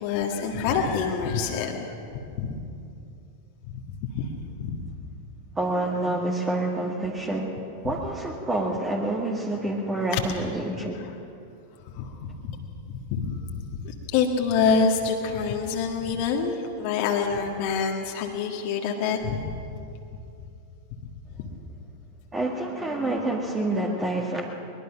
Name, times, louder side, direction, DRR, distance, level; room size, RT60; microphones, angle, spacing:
voice 1, 0.0-1.9 2.4-2.6 3.7-4.3 4.6-4.9 7.8-7.9 10.1-10.2 11.0-11.1 11.9-12.6 12.9-19.4 21.4-21.5, left 5 dB, 45° left, 1 dB, 1.8 m, -26 dB
voice 2, 5.6-11.1 22.3-24.5, right 2 dB, 15° right, 0 dB, 1.9 m, -28 dB
22.0 x 21.0 x 5.9 m, 2.6 s
figure-of-eight pair, 90°, 0 cm